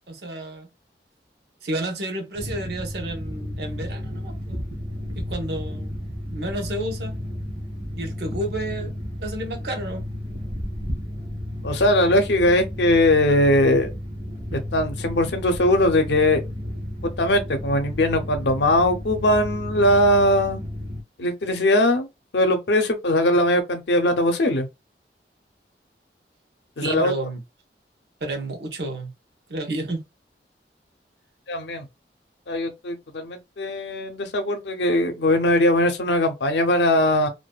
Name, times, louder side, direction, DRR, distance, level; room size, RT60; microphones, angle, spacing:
voice 1, 0.1-0.7 1.6-4.7 5.1-6.0 6.3-7.1 8.0-10.1 26.8-27.4 28.2-29.1 29.5-30.0, right 1 dB, 70° right, 0.8 m, -31 dB
sound 1, 2.3-21.0, left 1 dB, 35° right, 0.7 m, -32 dB
voice 2, 11.6-13.9 14.5-16.4 17.0-20.6 21.2-22.1 22.3-24.7 26.8-27.1 31.5-31.9 32.5-37.3, left 1 dB, 80° left, 0.6 m, -20 dB
2.5 x 2.2 x 2.3 m
head